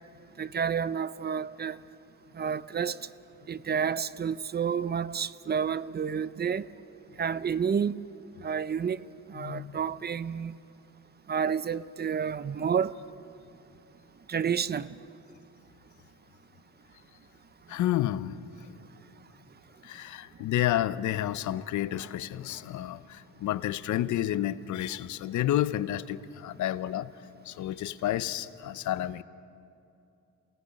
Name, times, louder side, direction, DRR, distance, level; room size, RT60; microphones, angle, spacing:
voice 1, 0.4-1.8 2.4-3.0 3.5-6.6 7.2-8.0 8.4-9.0 9.3-10.5 11.3-12.9 14.3-14.9, right 7 dB, 35° right, 16 dB, 0.6 m, -30 dB
voice 2, 9.4-9.8 17.7-18.4 19.8-27.1 27.5-29.2, left 13 dB, 75° left, 15 dB, 0.7 m, -30 dB
29.0 x 17.5 x 5.3 m, 2.7 s
cardioid pair, 90°, 30 cm